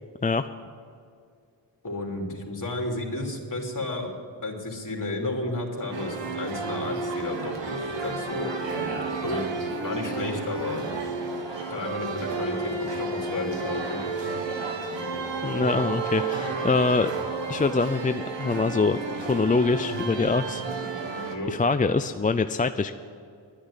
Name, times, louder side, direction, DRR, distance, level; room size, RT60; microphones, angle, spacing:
voice 1, 1.8-4.1 4.4-9.5 9.8-10.8 11.7-14.0 21.2-21.6, left 2 dB, 45° left, 1 dB, 2.9 m, -32 dB
sound 1, 5.9-21.4, right 3 dB, 80° right, 1.7 m, -32 dB
voice 2, 15.4-17.1 17.5-20.6 21.1-22.9, left 4 dB, 20° left, 10 dB, 0.4 m, -24 dB
11.0 x 10.0 x 9.8 m, 2.3 s
cardioid pair, 60°, 43 cm